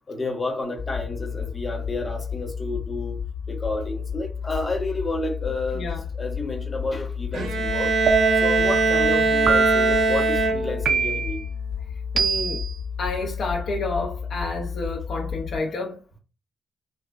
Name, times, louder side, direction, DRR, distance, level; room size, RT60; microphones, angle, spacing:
voice 1, 0.1-3.2 3.5-5.9 6.1-7.9 8.4-11.4, left 2 dB, 20° left, 0.7 m, -30 dB
sound 1, 0.8-15.6, left 7 dB, 85° left, 1.2 m, -32 dB
Bowed string instrument, 7.3-11.0, right 3 dB, 80° right, 0.7 m, -21 dB
sound 2, 8.1-8.6 9.5-10.0 10.9-11.4 12.2-12.7, right 5 dB, 50° right, 0.3 m, -23 dB
voice 2, 12.1-12.6 13.0-16.0, left 2 dB, 60° left, 0.5 m, -29 dB
3.5 x 2.1 x 2.3 m
wide cardioid pair, 150°, 0 cm